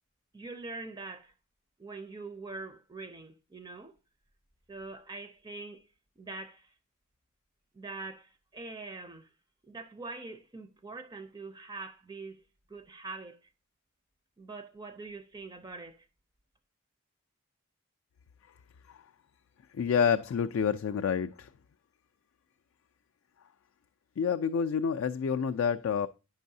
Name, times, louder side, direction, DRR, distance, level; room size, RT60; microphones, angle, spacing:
voice 1, 0.3-1.3 1.8-4.0 4.7-5.9 6.2-6.7 7.7-9.3 9.6-12.4 12.7-13.5 14.4-16.1, right 3 dB, 20° right, 0.4 m, -43 dB
voice 2, 19.7-21.5 24.2-26.1, left 7 dB, 65° left, 0.3 m, -28 dB
9.2 x 5.4 x 2.6 m
head